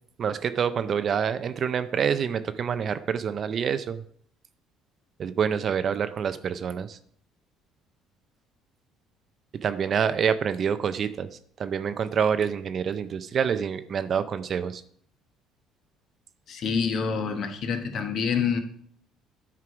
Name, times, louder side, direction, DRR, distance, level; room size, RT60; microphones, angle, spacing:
voice 1, 0.2-4.0 5.2-7.0 9.6-14.8, right 7 dB, 35° right, 12 dB, 0.4 m, -27 dB
voice 2, 16.5-18.6, left 6 dB, 45° left, 6 dB, 1.1 m, -27 dB
9.6 x 4.7 x 5.9 m, 0.63 s
cardioid pair, 150°, 0 cm